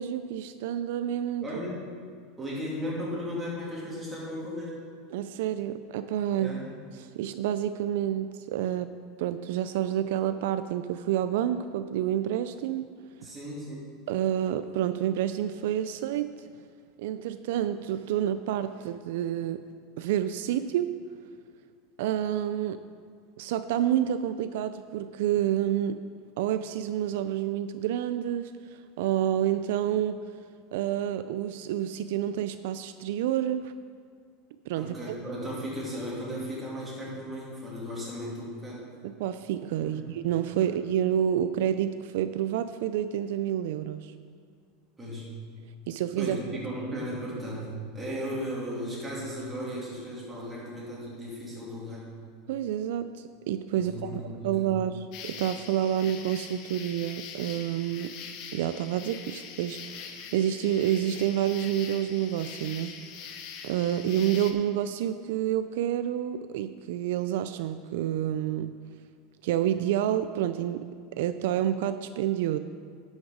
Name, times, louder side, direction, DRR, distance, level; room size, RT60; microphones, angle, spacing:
voice 1, 0.0-1.4 5.1-6.6 6.9-8.9 9.2-12.9 13.2-13.3 14.1-16.3 17.0-19.6 20.0-20.9 22.0-22.8 23.4-26.0 26.4-30.2 30.7-33.7 34.7-35.0 39.0-44.1 45.9-46.6 52.5-58.1 58.5-63.0 63.6-68.7 69.4-72.6, right 11 dB, 70° right, 11 dB, 0.3 m, -29 dB
voice 2, 1.4-1.8 2.4-4.7 6.3-6.6 13.2-13.9 34.8-38.8 39.9-40.1 45.0-45.3 46.2-47.7 47.9-52.0 53.7-54.7, equal, 10° right, -7 dB, 2.7 m, -36 dB
sound 1, 55.1-64.5, left 7 dB, 50° left, 0.8 m, -43 dB
10.5 x 6.4 x 5.0 m, 2.1 s
supercardioid pair, 155°, 0 cm